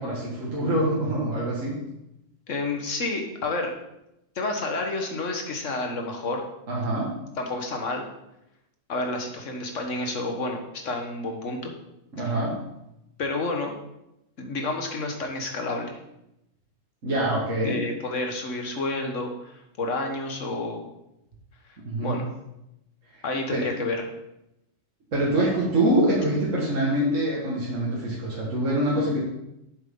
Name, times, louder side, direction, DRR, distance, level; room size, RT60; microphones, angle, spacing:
voice 1, 0.0-1.8 6.7-7.1 12.1-12.6 17.0-17.8 21.9-22.2 23.1-23.2 23.5-23.7 25.1-29.2, right 1 dB, 70° right, -5 dB, 2.1 m, -25 dB
voice 2, 2.5-3.7 4.3-6.4 7.4-8.0 8.9-11.7 12.2-12.3 13.2-13.7 14.4-15.9 17.6-20.9 22.0-22.3 23.2-24.1, left 2 dB, 70° left, 3 dB, 1.7 m, -30 dB
8.1 x 7.6 x 3.8 m, 0.86 s
omnidirectional pair, 1.4 m